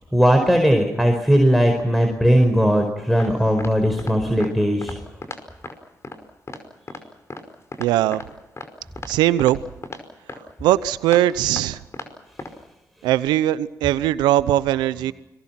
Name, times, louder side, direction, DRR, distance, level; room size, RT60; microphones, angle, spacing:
voice 1, 0.1-4.9, equal, ahead, 3 dB, 4.9 m, -18 dB
sound 1, 3.2-3.3 3.6-3.7 4.0-4.1 4.4-4.5 4.8-5.0 5.2-5.4 5.6-5.7 6.0-6.2 6.5-6.6 6.9-7.0 7.3-7.4 7.7-8.3 8.6-8.7 9.0-9.1 9.4-9.5 9.8-10.0 10.3-10.4 10.7-10.8 11.1-11.2 11.6-11.7 11.9-12.1 12.4-12.5, left 3 dB, 40° left, 5.2 m, -35 dB
voice 2, 7.8-8.2 9.1-9.7 10.3-11.8 13.0-15.1, right 13 dB, 85° right, 17 dB, 0.8 m, -20 dB
30.0 x 23.0 x 6.0 m, 0.98 s
supercardioid pair, 50°, 7 cm